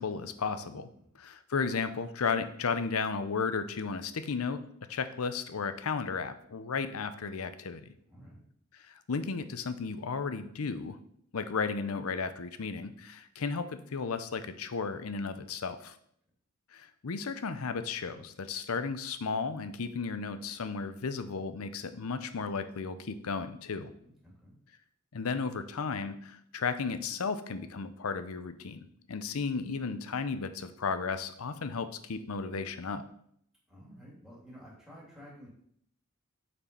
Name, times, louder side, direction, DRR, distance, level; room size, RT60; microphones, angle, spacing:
voice 1, 0.0-0.9 1.2-7.9 8.9-11.0 11.3-16.0 16.7-23.9 25.1-33.0, left 5 dB, 85° left, 11 dB, 0.6 m, -34 dB
voice 2, 8.1-8.4 23.8-24.6 33.7-35.5, equal, ahead, -6 dB, 2.8 m, -52 dB
7.2 x 4.4 x 5.3 m, 0.68 s
head